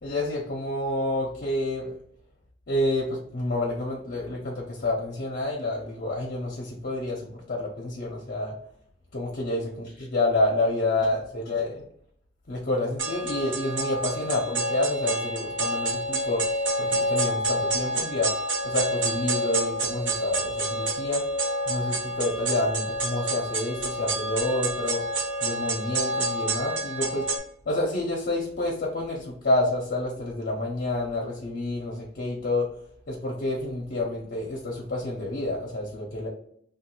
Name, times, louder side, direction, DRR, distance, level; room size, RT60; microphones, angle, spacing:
voice 1, 0.0-1.8 2.7-7.2 7.5-8.5 9.1-11.8 12.5-16.4 16.8-18.3 18.6-21.2 21.7-25.0 25.4-27.2 27.7-32.6 33.1-36.3, left 2 dB, 55° left, -2 dB, 0.6 m, -28 dB
sound 1, 13.0-27.4, right 1 dB, 75° right, 0.7 m, -28 dB
3.1 x 2.3 x 2.9 m, 0.64 s
head